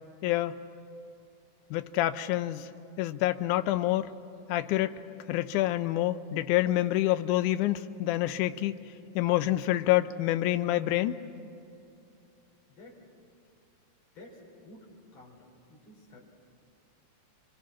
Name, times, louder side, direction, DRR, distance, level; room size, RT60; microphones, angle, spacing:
voice 1, 0.2-0.6 1.7-2.7 3.0-4.1 4.5-5.0 5.3-8.8 9.2-11.2, left 15 dB, 75° left, 11 dB, 1.9 m, -27 dB
voice 2, 12.7-13.0 14.1-16.2, left 1 dB, 45° left, -2 dB, 5.3 m, -52 dB
29.5 x 23.5 x 6.1 m, 2.6 s
omnidirectional pair, 4.2 m